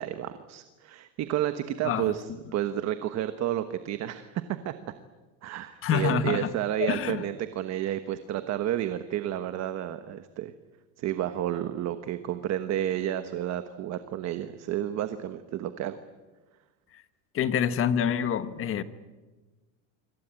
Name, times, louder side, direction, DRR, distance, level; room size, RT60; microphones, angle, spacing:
voice 1, 0.0-2.3 2.5-4.3 4.6-4.7 5.4-10.5 11.0-16.0, right 12 dB, 35° right, 10 dB, 1.3 m, -31 dB
voice 2, 1.8-2.1 5.8-6.5 6.8-7.2 17.3-18.8, left 8 dB, 30° left, 12 dB, 1.3 m, -26 dB
26.0 x 25.0 x 9.0 m, 1.2 s
cardioid pair, 160°, 44 cm